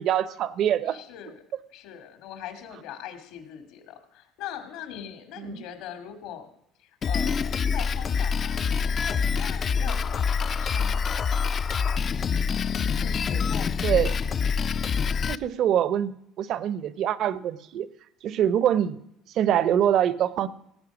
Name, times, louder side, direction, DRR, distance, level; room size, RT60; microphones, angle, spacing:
voice 1, 0.0-1.0 5.4-5.6 9.9-10.0 13.8-14.1 15.3-17.9 18.2-19.0 19.3-20.5, right 10 dB, 50° right, 18 dB, 0.7 m, -24 dB
voice 2, 0.9-1.4 1.7-6.5 6.8-8.6 9.0-11.5 13.0-13.9, left 9 dB, 75° left, 9 dB, 2.3 m, -41 dB
Drum kit, 7.0-15.3, left 6 dB, 30° left, 0.4 m, -26 dB
17.0 x 9.0 x 6.0 m, 0.77 s
cardioid pair, 135°, 0 cm